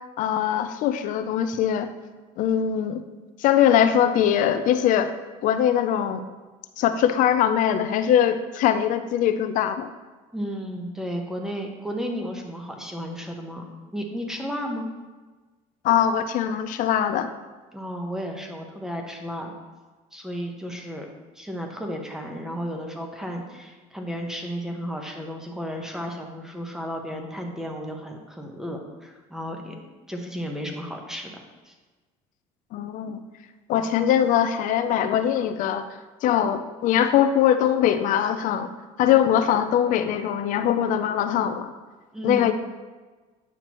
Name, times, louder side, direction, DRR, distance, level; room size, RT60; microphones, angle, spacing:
voice 1, 0.2-1.9 2.4-3.0 3.4-5.1 5.4-6.2 6.8-9.9 15.8-17.3 32.7-33.2 33.7-35.8 36.2-38.7 39.0-41.7 42.2-42.5, left 10 dB, 60° left, 9 dB, 0.5 m, -21 dB
voice 2, 10.3-13.6 13.9-14.8 17.7-19.5 20.1-21.1 21.3-29.7 30.1-31.3 31.6-31.7 42.1-42.5, equal, 5° right, 2 dB, 1.0 m, -33 dB
9.1 x 5.8 x 3.0 m, 1.3 s
cardioid pair, 125°, 15 cm